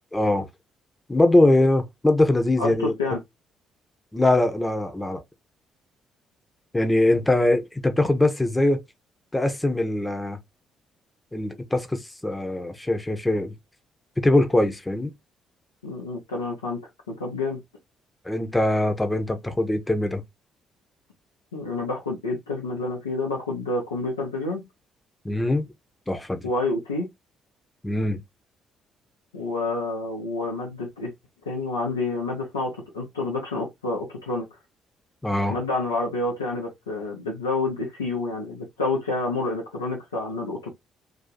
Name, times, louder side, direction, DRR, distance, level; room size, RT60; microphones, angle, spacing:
voice 1, 0.1-0.5 1.1-2.9 4.1-5.2 6.7-8.8 9.3-10.4 11.3-13.5 14.2-15.1 18.2-20.2 25.2-25.7 26.1-26.4 27.8-28.2 35.2-35.5, left 1 dB, 15° left, 1.1 m, -22 dB
voice 2, 2.6-3.2 15.8-16.8 17.1-17.6 21.5-24.7 26.4-27.1 29.3-31.1 31.5-34.5 35.5-40.7, left 2 dB, 85° left, 0.8 m, -28 dB
2.9 x 2.7 x 3.9 m
figure-of-eight pair, 45°, 0 cm